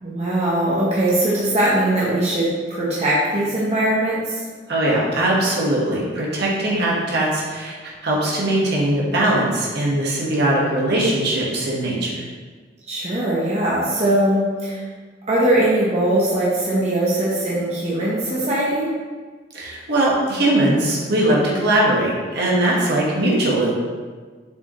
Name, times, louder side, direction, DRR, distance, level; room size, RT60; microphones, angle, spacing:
voice 1, 0.0-4.5 12.9-14.8 15.3-18.9, right 1 dB, 40° right, -7 dB, 1.1 m, -20 dB
voice 2, 4.7-12.2 19.5-23.8, right 1 dB, 65° right, -5 dB, 1.6 m, -20 dB
6.8 x 5.1 x 3.2 m, 1.5 s
head